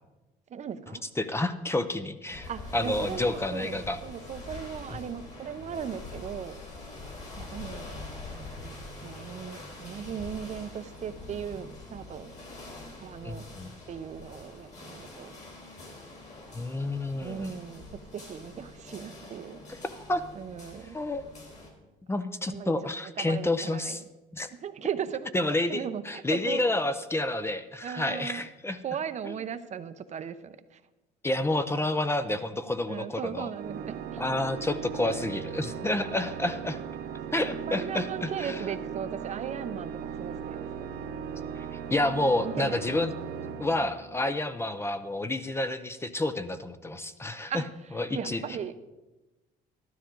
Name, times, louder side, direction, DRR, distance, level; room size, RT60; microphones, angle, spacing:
voice 1, 0.5-1.0 2.5-6.6 7.4-12.3 13.0-13.4 13.9-15.4 16.4-16.5 17.2-17.8 18.1-19.6 20.3-21.0 22.5-24.0 24.5-26.6 27.8-28.4 28.8-30.8 32.9-34.2 35.0-35.2 37.7-40.9 42.4-42.8 43.8-43.9 47.5-48.7, right 8 dB, 45° right, 11 dB, 0.7 m, -38 dB
voice 2, 1.2-4.0 13.2-13.7 16.5-17.5 19.8-20.2 20.9-21.2 22.1-24.0 24.3-24.5 25.3-28.8 31.2-33.5 34.2-36.8 37.3-38.6 41.6-43.1 43.6-47.5 48.0-48.4, left 2 dB, 15° left, 11 dB, 0.6 m, -29 dB
sound 1, 2.3-21.7, left 2 dB, 45° left, 3.4 m, -44 dB
Organ, 33.5-44.5, right 7 dB, 70° right, 1.0 m, -38 dB
12.5 x 12.5 x 3.9 m, 1.1 s
cardioid pair, 110°, 17 cm